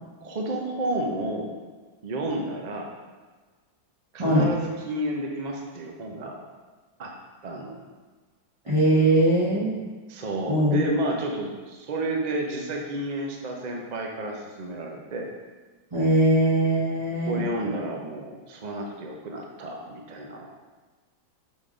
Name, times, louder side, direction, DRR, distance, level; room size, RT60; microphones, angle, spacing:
voice 1, 0.2-1.5 2.0-2.9 4.1-6.4 7.0-7.1 7.4-7.8 10.1-15.3 17.1-20.5, right 1 dB, 75° right, 0 dB, 0.4 m, -31 dB
voice 2, 8.6-9.7 10.5-10.8 15.9-17.4, right 1 dB, 20° right, -9 dB, 1.0 m, -21 dB
6.2 x 3.8 x 5.1 m, 1.4 s
omnidirectional pair, 2.1 m